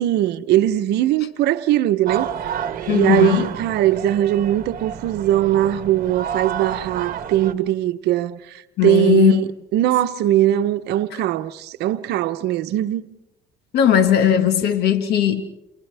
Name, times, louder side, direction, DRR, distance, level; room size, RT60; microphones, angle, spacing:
voice 1, 0.0-2.3 2.9-13.1, right 13 dB, 80° right, 0.9 m, -20 dB
sound 1, 2.1-7.5, right 9 dB, 55° right, 1.3 m, -30 dB
voice 2, 2.9-3.5 8.8-9.4 13.7-15.4, left 10 dB, 70° left, 1.5 m, -17 dB
29.0 x 29.0 x 3.5 m
cardioid pair, 110°, 17 cm